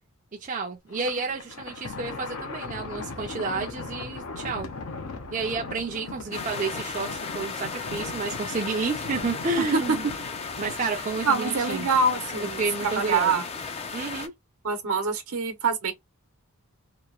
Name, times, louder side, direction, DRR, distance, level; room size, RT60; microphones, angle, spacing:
voice 1, 0.4-4.7 5.3-10.1 10.6-11.9 12.4-13.4 13.9-14.3, right 4 dB, 35° right, 0.4 m, -31 dB
Thunder, 0.9-12.7, left 3 dB, 75° left, 0.6 m, -39 dB
sound 1, 6.3-14.3, left 5 dB, 25° left, 0.3 m, -35 dB
voice 2, 11.2-12.6 13.0-13.5 14.6-15.9, right 4 dB, 75° right, 0.9 m, -24 dB
2.9 x 2.0 x 2.4 m
head